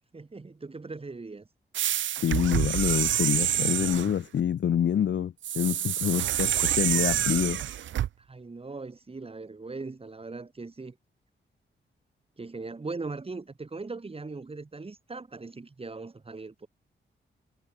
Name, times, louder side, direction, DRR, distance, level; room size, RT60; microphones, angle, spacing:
voice 1, 0.1-1.5 8.2-11.0 12.4-16.7, right 3 dB, 30° right, 6.7 m, -39 dB
sound 1, 1.7-4.2 5.4-8.1, right 11 dB, 80° right, 0.7 m, -27 dB
voice 2, 2.2-7.6, left 9 dB, 70° left, 1.3 m, -27 dB
cardioid pair, 100°, 19 cm